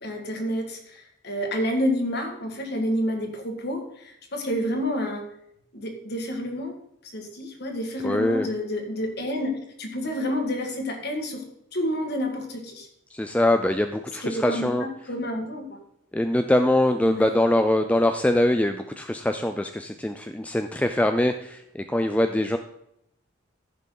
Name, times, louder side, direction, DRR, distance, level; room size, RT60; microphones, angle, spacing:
voice 1, 0.0-5.3 5.7-6.7 7.1-9.5 9.8-11.4 11.7-12.9 14.2-15.8 17.0-17.3, equal, 50° left, 3 dB, 1.7 m, -29 dB
voice 2, 8.0-8.5 13.1-15.1 16.1-22.6, left 1 dB, 5° left, 6 dB, 0.3 m, -23 dB
14.5 x 5.8 x 3.9 m, 0.75 s
head